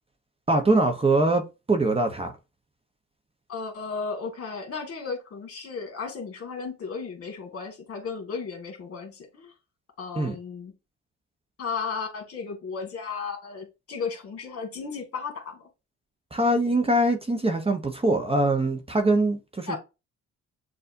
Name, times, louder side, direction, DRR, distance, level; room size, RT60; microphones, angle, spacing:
voice 1, 0.5-1.4 1.7-2.3 10.1-10.3 16.3-19.8, right 2 dB, 20° right, 0.8 m, -23 dB
voice 2, 3.5-9.5 10.0-10.7 11.6-15.7 19.7-19.8, left 5 dB, 50° left, 1.9 m, -34 dB
6.7 x 2.5 x 2.6 m
cardioid pair, 90°, 30 cm